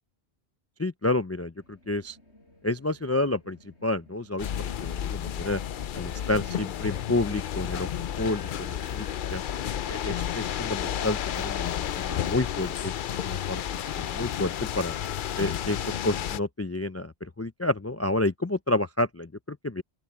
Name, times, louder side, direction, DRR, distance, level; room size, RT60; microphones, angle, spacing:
voice 1, 0.8-2.2 2.6-5.6 5.9-7.9 8.2-9.4 9.9-11.7 12.0-12.9 13.2-14.9 15.4-19.8, left 2 dB, 25° left, 0.3 m, -30 dB
sound 1, 1.5-14.5, left 1 dB, 85° left, 6.9 m, -57 dB
sound 2, 4.4-16.4, left 10 dB, 55° left, 0.7 m, -32 dB
open air
omnidirectional pair, 1.1 m